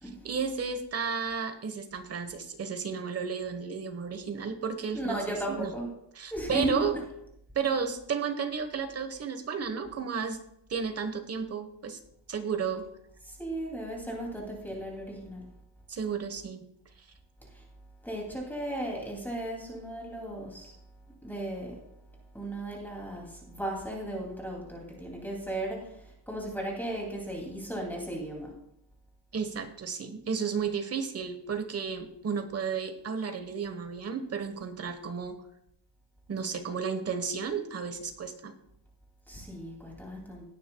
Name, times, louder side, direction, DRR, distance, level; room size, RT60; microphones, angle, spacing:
voice 1, 0.2-5.7 6.1-6.9 7.5-10.4 10.7-12.0 12.3-12.9 15.9-16.6 29.3-35.4 36.3-38.5, right 6 dB, 35° right, 8 dB, 1.2 m, -33 dB
voice 2, 4.9-5.9 6.3-6.8 13.2-15.5 17.5-17.6 18.0-20.7 21.2-21.7 22.3-28.5 39.3-40.4, right 1 dB, 5° left, -2 dB, 2.6 m, -35 dB
17.5 x 9.4 x 2.3 m, 0.78 s
cardioid pair, 140°, 44 cm